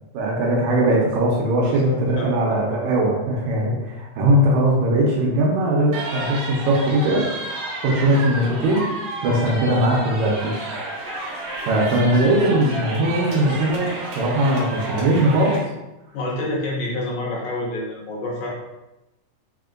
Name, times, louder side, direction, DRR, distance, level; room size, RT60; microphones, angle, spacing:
voice 1, 0.1-8.8 9.2-10.5 11.6-15.6, right 1 dB, 80° right, -2 dB, 1.9 m, -20 dB
voice 2, 1.6-2.3 16.1-18.5, left 1 dB, 75° left, -3 dB, 2.1 m, -28 dB
sound 1, 5.9-15.6, right 2 dB, 65° right, 1.4 m, -31 dB
5.0 x 2.8 x 2.4 m, 0.98 s
omnidirectional pair, 3.6 m